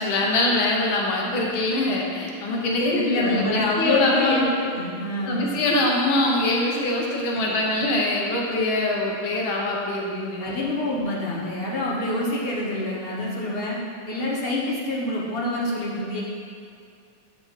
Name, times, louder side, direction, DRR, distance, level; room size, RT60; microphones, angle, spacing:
voice 1, 0.0-4.5 5.3-10.6, left 2 dB, 70° left, -2 dB, 1.8 m, -23 dB
voice 2, 2.5-5.4 10.4-13.8 14.1-16.2, left 2 dB, 35° left, -5 dB, 1.1 m, -26 dB
8.6 x 5.8 x 4.0 m, 2.3 s
omnidirectional pair, 2.4 m